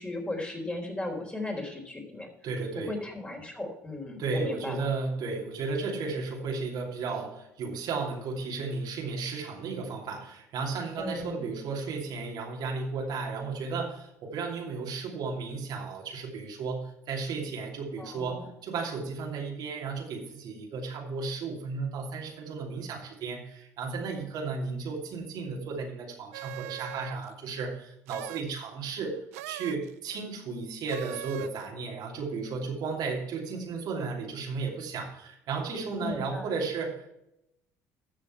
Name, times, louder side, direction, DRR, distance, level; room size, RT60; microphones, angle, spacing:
voice 1, 0.0-2.3 2.7-4.9 11.0-11.5 18.0-18.5 36.0-36.5, left 2 dB, 15° left, 1 dB, 3.9 m, -36 dB
voice 2, 2.4-3.0 4.2-37.1, right 4 dB, 65° right, -1 dB, 2.7 m, -34 dB
sound 1, 26.3-27.3 28.1-28.6 29.3-29.9 30.9-31.6, right 17 dB, 85° right, 0.4 m, -41 dB
13.5 x 6.3 x 4.5 m, 0.82 s
hypercardioid pair, 60°, 8 cm